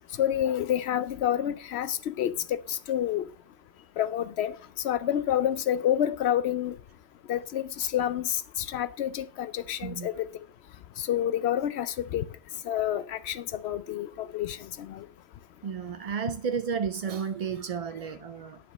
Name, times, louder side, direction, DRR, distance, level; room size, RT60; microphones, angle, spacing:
voice 1, 0.2-3.2 4.0-4.5 4.8-6.7 7.3-10.2 11.0-12.3 12.7-15.0, left 11 dB, 80° left, 0.8 m, -28 dB
voice 2, 15.6-18.6, right 6 dB, 50° right, 0.4 m, -32 dB
9.4 x 5.2 x 6.3 m
omnidirectional pair, 1.1 m